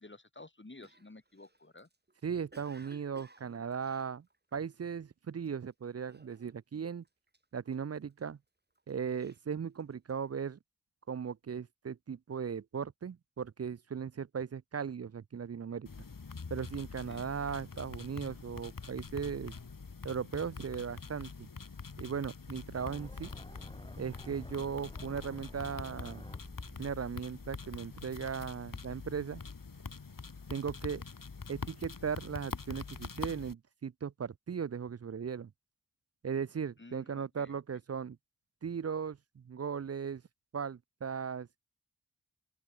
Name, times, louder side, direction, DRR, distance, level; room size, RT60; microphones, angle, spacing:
voice 1, 0.0-1.9 17.1-17.3 36.8-37.6, left 2 dB, 35° left, 4.1 m, -53 dB
Cough, 0.8-4.9 5.4-5.7 6.1-6.8 7.0-8.2 8.7-10.3, right 2 dB, 30° right, 3.2 m, -60 dB
voice 2, 2.2-4.3 4.5-7.0 7.5-8.4 8.9-10.6 11.1-15.9 16.5-19.5 20.0-21.5 22.0-23.3 24.0-26.3 26.8-29.4 30.5-31.0 31.5-35.5 36.2-38.2 38.6-40.2 40.5-41.5, right 6 dB, 50° right, 0.5 m, -37 dB
sound 1, 15.9-33.5, left 4 dB, 80° left, 3.4 m, -45 dB
sound 2, 22.8-28.7, left 1 dB, 15° left, 3.2 m, -50 dB
open air
wide cardioid pair, 70°, 33 cm